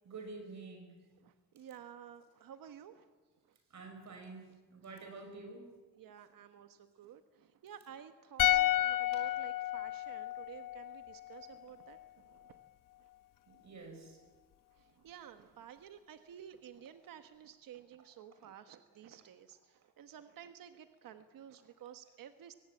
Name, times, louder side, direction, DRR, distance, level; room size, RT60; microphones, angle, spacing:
voice 1, 0.0-1.0 3.7-5.7 13.5-14.2, right 3 dB, 55° right, 5 dB, 6.3 m, -48 dB
voice 2, 1.2-3.1 3.5-3.6 6.0-12.6 13.0-13.1 14.7-22.5, right 9 dB, 70° right, 8 dB, 1.3 m, -53 dB
sound 1, 8.4-11.6 11.9-12.0, left 14 dB, 70° left, 0.9 m, -32 dB
23.0 x 18.5 x 8.6 m, 1.3 s
cardioid pair, 100°, 34 cm